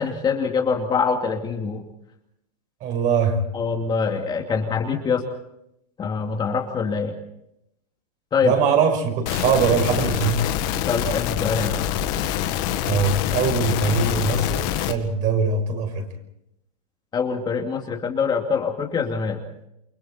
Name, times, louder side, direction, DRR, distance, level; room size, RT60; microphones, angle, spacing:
voice 1, 0.0-1.8 3.5-5.2 6.0-7.1 8.3-8.5 10.9-11.8 17.1-19.4, left 5 dB, 20° left, 2 dB, 2.5 m, -24 dB
voice 2, 2.8-3.4 8.4-10.4 12.8-16.1, right 5 dB, 40° right, 5 dB, 5.9 m, -22 dB
sound 1, 9.3-14.9, left 11 dB, 45° left, 2.1 m, -25 dB
29.0 x 23.5 x 4.3 m, 0.79 s
hypercardioid pair, 125°, 20 cm